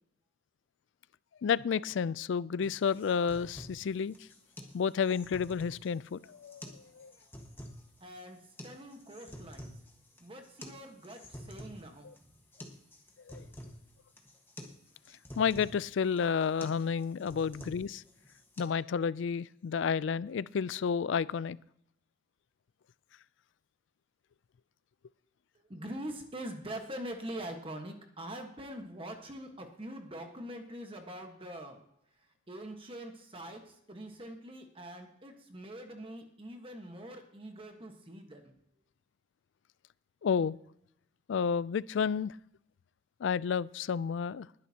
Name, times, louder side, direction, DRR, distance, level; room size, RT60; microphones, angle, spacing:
voice 1, 1.4-4.1 4.7-7.1 13.3-13.4 15.4-18.0 18.6-21.6 40.2-40.6 41.3-42.3 43.2-44.5, left 6 dB, 65° left, 20 dB, 0.3 m, -31 dB
sound 1, 2.6-18.6, equal, 10° left, 1.5 m, -50 dB
voice 2, 8.0-9.7 10.2-12.4 25.5-31.8 32.5-38.5, right 1 dB, 30° right, 4 dB, 1.3 m, -44 dB
20.5 x 10.5 x 2.9 m, 0.75 s
head